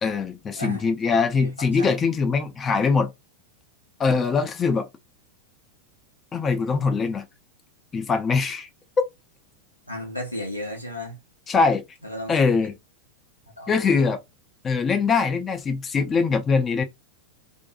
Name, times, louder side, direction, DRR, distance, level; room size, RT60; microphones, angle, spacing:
voice 1, 0.0-3.1 4.0-4.9 6.3-7.2 7.9-8.7 11.5-11.8 12.3-12.7 13.7-14.2 14.6-16.8, left 5 dB, 20° left, 0.5 m, -22 dB
voice 2, 0.5-0.9 1.4-1.9 9.9-11.2 12.0-12.3 13.6-14.1, left 1 dB, 90° left, 0.8 m, -34 dB
2.5 x 2.2 x 2.6 m
figure-of-eight pair, 90°, 0 cm